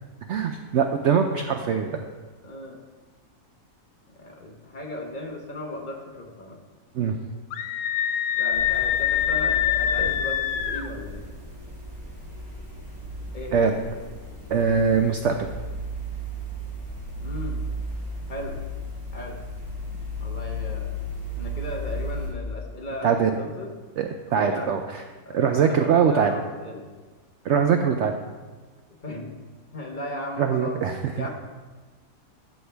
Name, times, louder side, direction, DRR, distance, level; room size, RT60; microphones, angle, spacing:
voice 1, 0.3-2.1 6.9-7.2 13.5-13.7 14.5-15.5 23.0-23.3 24.0-25.0 25.3-26.3 27.4-28.1 30.4-31.3, right 6 dB, 65° right, 6 dB, 0.7 m, -22 dB
voice 2, 2.4-2.8 4.1-6.6 8.4-11.3 13.3-13.8 17.2-17.6 18.3-18.6 19.1-19.4 20.2-20.9 21.3-23.7 24.3-24.7 25.2-26.8 29.0-29.3 29.7-30.8 31.1-31.3, left 1 dB, 35° left, 0 dB, 1.2 m, -36 dB
Screaming, 7.5-10.9, left 10 dB, 90° left, 1.2 m, -24 dB
sound 1, 8.5-22.3, equal, 25° right, 2.2 m, -35 dB
13.0 x 6.5 x 3.4 m, 1.4 s
omnidirectional pair, 1.6 m